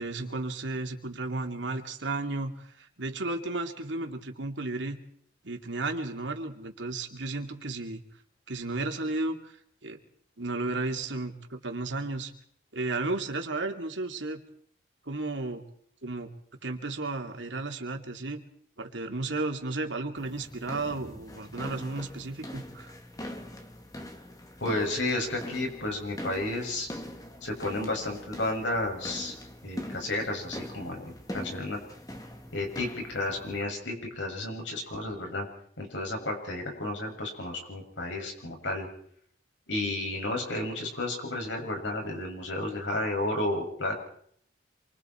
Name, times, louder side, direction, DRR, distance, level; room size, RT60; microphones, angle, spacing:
voice 1, 0.0-5.0 5.4-8.0 8.5-9.5 9.8-10.0 10.4-12.3 12.7-14.4 15.1-15.6 16.0-16.3 16.6-18.4 18.8-22.9, right 2 dB, 90° right, 4 dB, 2.9 m, -33 dB
sound 1, 20.2-33.6, left 1 dB, 20° left, 1.7 m, -42 dB
voice 2, 24.6-26.9 27.4-29.3 29.6-31.8 32.5-35.5 35.8-38.9 39.7-44.0, left 2 dB, 90° left, 2 dB, 7.2 m, -32 dB
27.5 x 24.5 x 4.6 m, 0.64 s
head